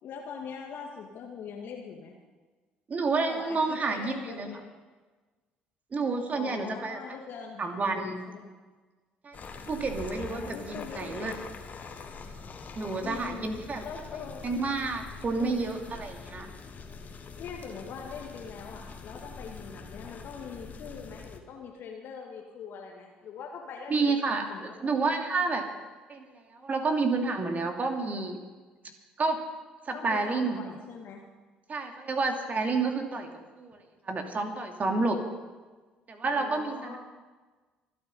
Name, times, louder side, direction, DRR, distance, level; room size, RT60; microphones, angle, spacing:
voice 1, 0.0-2.1 3.3-4.7 6.3-8.5 10.3-11.4 13.0-13.5 13.8-14.4 15.4-15.6 17.4-24.9 29.9-31.2 36.3-37.0, left 6 dB, 55° left, 0 dB, 1.9 m, -42 dB
voice 2, 2.9-4.5 5.9-7.0 7.6-8.2 9.2-9.4 9.7-11.3 12.7-13.8 14.4-16.5 23.9-25.6 26.1-28.4 29.2-29.4 29.9-30.6 31.7-33.3 33.6-33.8 34.1-35.2 36.1-37.0, right 3 dB, 35° right, 4 dB, 2.7 m, -29 dB
sound 1, 9.3-21.4, left 4 dB, 40° left, 2.0 m, -44 dB
25.5 x 8.5 x 5.5 m, 1.3 s
hypercardioid pair, 55°, 4 cm